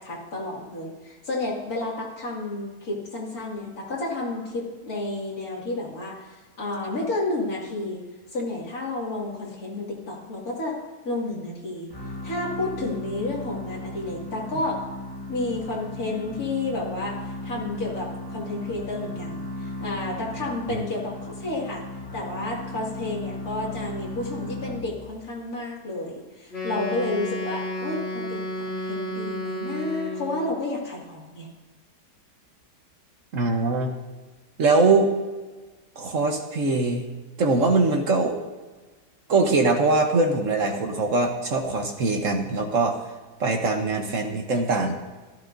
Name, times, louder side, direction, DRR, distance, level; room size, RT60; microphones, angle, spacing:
voice 1, 0.0-11.9 12.2-14.8 15.3-21.9 22.1-31.5, left 2 dB, 60° left, -3 dB, 2.8 m, -31 dB
sound 1, 11.9-25.3, left 1 dB, 15° left, 1.1 m, -36 dB
Wind instrument woodwind instrument, 26.5-30.6, equal, 35° left, 3.6 m, -32 dB
voice 2, 33.3-33.9 34.6-35.1 36.0-37.0 37.4-38.4 39.3-43.0 43.4-44.9, right 3 dB, 55° right, 4 dB, 1.3 m, -22 dB
15.0 x 12.0 x 2.6 m, 1.3 s
omnidirectional pair, 1.8 m